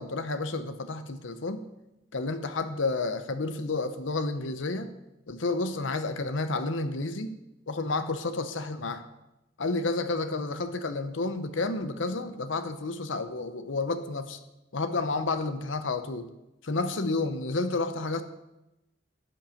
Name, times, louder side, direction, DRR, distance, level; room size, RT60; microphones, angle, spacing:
voice 1, 0.0-1.6 2.1-4.9 5.3-7.4 7.7-9.0 9.6-14.4 14.7-16.3 16.6-18.2, left 3 dB, 70° left, 10 dB, 0.8 m, -30 dB
15.5 x 5.4 x 7.1 m, 0.93 s
head